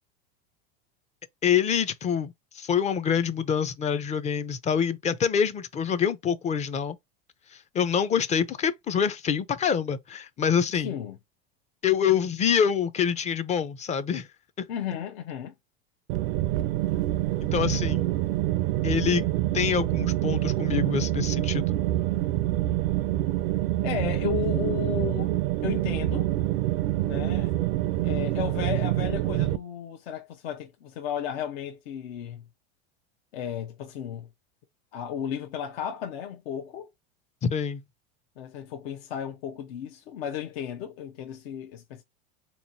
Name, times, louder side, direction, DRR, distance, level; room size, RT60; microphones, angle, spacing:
voice 1, 1.4-7.0 7.7-10.9 11.8-14.3 14.6-14.7 17.5-18.1 18.8-21.8 37.4-37.8, left 7 dB, 25° left, 0.4 m, -26 dB
voice 2, 10.7-11.2 14.7-15.5 23.8-26.3 27.1-27.5 28.0-32.4 33.3-34.3 34.9-36.9 38.4-42.0, left 9 dB, 75° left, 0.7 m, -34 dB
Rio Vista Ventilation, 16.1-29.6, right 15 dB, 70° right, 0.5 m, -26 dB
3.8 x 3.0 x 2.5 m
supercardioid pair, 115°, 30 cm